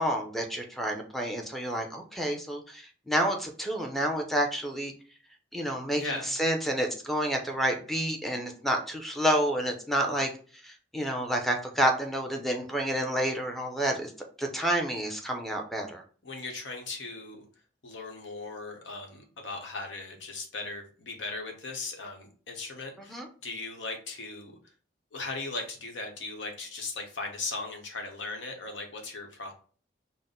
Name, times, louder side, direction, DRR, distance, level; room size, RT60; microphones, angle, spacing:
voice 1, 0.0-4.9 5.5-10.3 10.6-14.1 14.4-16.0 23.1-23.3, right 1 dB, ahead, 1 dB, 0.6 m, -29 dB
voice 2, 5.9-6.3 16.2-17.4 17.8-24.6 25.1-29.5, left 3 dB, 85° left, 2 dB, 0.9 m, -38 dB
4.1 x 2.1 x 3.7 m, 0.40 s
head